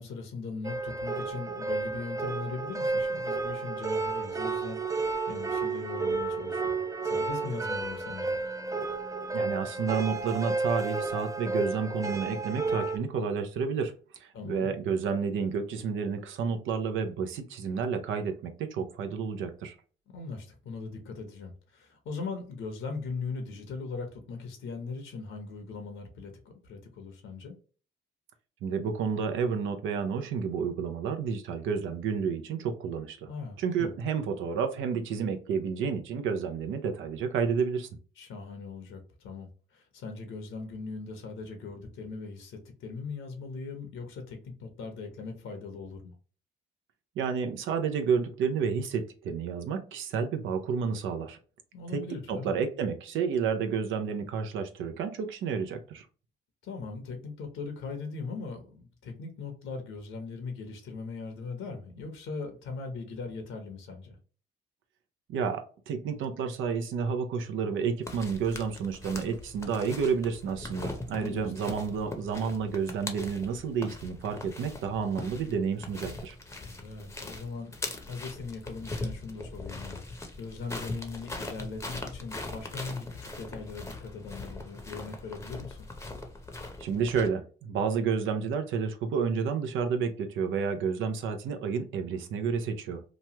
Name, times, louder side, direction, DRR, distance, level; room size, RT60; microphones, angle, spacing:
voice 1, 0.0-8.4 14.3-14.7 20.1-27.6 33.3-33.9 38.2-46.1 51.7-52.5 56.6-64.2 71.2-71.5 76.6-85.9, left 4 dB, 80° left, 0.9 m, -40 dB
sound 1, 0.6-13.0, right 3 dB, 15° right, 0.4 m, -32 dB
voice 2, 9.3-19.7 28.6-33.3 33.6-37.9 47.2-51.4 51.9-52.0 52.3-56.1 65.3-76.4 86.8-93.0, right 6 dB, 80° right, 0.6 m, -30 dB
sound 2, 68.0-87.3, left 2 dB, 15° left, 0.7 m, -41 dB
3.0 x 2.3 x 2.8 m
cardioid pair, 90°, 20 cm